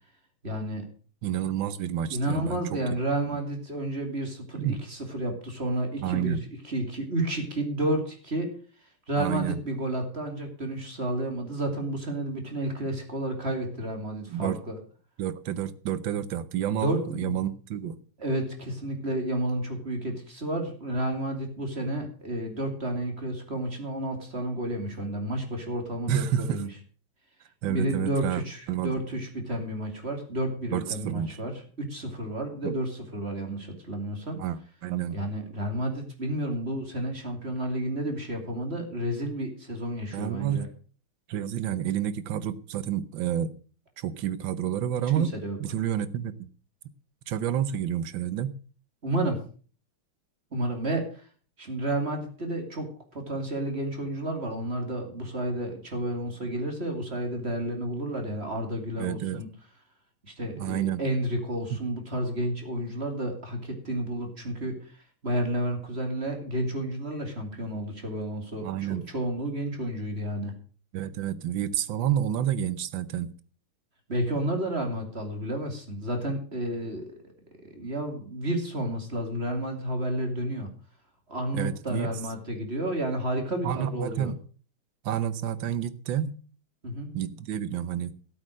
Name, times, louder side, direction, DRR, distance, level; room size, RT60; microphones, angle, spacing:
voice 1, 0.4-0.9 2.1-6.4 6.6-8.5 9.1-14.8 16.7-17.4 18.2-26.7 27.6-31.5 31.8-34.4 35.1-40.7 45.2-45.6 49.0-49.4 50.5-51.3 51.6-59.5 60.2-64.8 65.2-70.5 74.1-77.0 77.7-80.7 81.3-84.3 86.8-87.1, right 1 dB, 30° right, 4 dB, 2.8 m, -31 dB
voice 2, 1.2-2.8 4.6-4.8 6.0-6.4 9.2-9.6 14.3-14.6 15.2-18.0 26.1-26.6 27.6-28.4 28.7-28.9 30.7-31.4 32.6-32.7 34.4-35.2 40.1-40.7 41.3-43.5 44.0-45.3 45.6-46.5 47.3-48.5 59.0-59.4 60.6-61.0 68.6-69.1 70.9-73.3 81.5-82.1 83.6-84.4 85.0-86.4 87.1-88.2, right 10 dB, 65° right, 15 dB, 1.5 m, -29 dB
13.5 x 8.4 x 6.4 m, 0.40 s
omnidirectional pair, 2.3 m